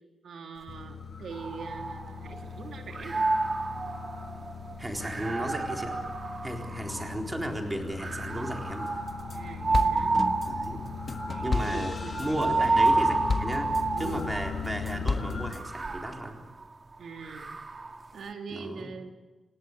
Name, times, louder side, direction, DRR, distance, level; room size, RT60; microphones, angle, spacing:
voice 1, 0.2-3.3 9.3-10.2 11.3-13.0 13.9-14.3 14.9-15.0 15.3-15.4 17.0-17.5 18.1-19.1, right 4 dB, 85° right, 4 dB, 2.7 m, -42 dB
sound 1, 0.7-15.5, left 6 dB, 60° left, 5.5 m, -39 dB
sound 2, 1.3-2.5 2.9-7.3 8.0-14.7 15.4-18.0, right 3 dB, 35° right, 1.9 m, -30 dB
voice 2, 4.8-6.0 6.4-9.0 10.4-10.9 11.4-11.9 12.2-13.7 14.0-16.4 18.5-18.9, right 1 dB, 15° right, 2 dB, 4.0 m, -34 dB
sound 3, 8.9-9.4 9.7-14.2 14.6-15.6, left 4 dB, 45° left, 1.5 m, -33 dB
27.0 x 18.5 x 8.1 m, 1.2 s
wide cardioid pair, 125°, 0 cm